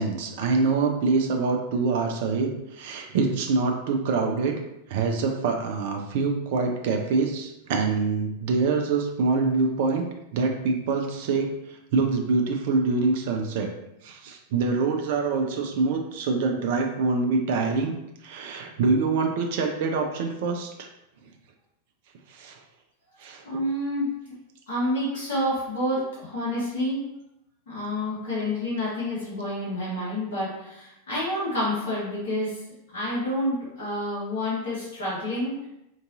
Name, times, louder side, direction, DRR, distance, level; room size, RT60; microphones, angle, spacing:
voice 1, 0.0-4.5 4.9-10.0 10.3-13.7 14.0-17.9 18.2-20.9 22.3-22.6 23.2-23.4, right 4 dB, 50° right, 3 dB, 0.4 m, -25 dB
voice 2, 23.4-24.1 24.7-27.0 27.7-32.6 32.9-35.7, left 1 dB, 60° left, -8 dB, 1.2 m, -28 dB
3.8 x 2.6 x 2.6 m, 0.86 s
figure-of-eight pair, 90°, 0 cm